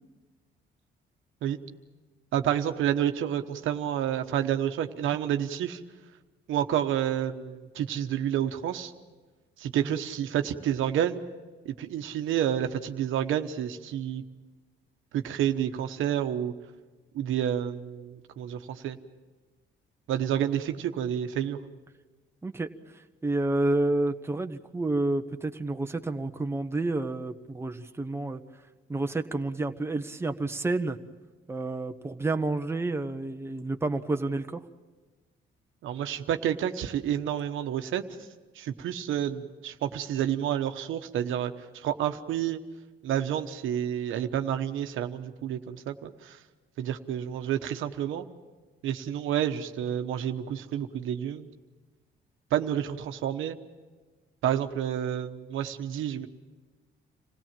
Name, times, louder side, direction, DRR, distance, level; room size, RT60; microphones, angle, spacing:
voice 1, 2.3-5.8 6.5-8.9 9.6-11.2 11.6-14.2 15.1-16.5 17.1-19.0 20.1-21.6 35.8-38.0 38.5-42.6 43.0-46.4 46.8-48.2 48.8-51.5 52.5-53.6 54.4-56.3, right 10 dB, 85° right, 7 dB, 1.1 m, -29 dB
voice 2, 22.4-28.6 28.9-31.0 31.5-34.7, right 2 dB, 10° right, 6 dB, 1.1 m, -30 dB
26.5 x 17.0 x 7.5 m, 1.3 s
cardioid pair, 90°, 20 cm